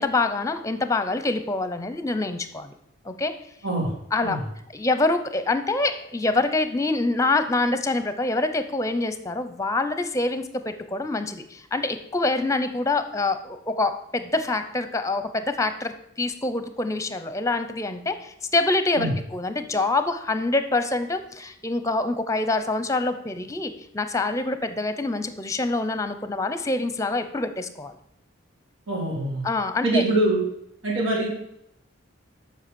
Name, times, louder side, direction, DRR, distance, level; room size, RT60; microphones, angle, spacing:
voice 1, 0.0-2.7 3.0-3.3 4.1-4.4 4.7-15.9 16.2-27.9 29.4-30.0, left 2 dB, 15° left, 10 dB, 0.7 m, -25 dB
voice 2, 28.9-29.4 29.8-30.4 30.8-31.3, right 2 dB, 85° right, -4 dB, 3.7 m, -24 dB
7.9 x 5.7 x 6.9 m, 0.75 s
head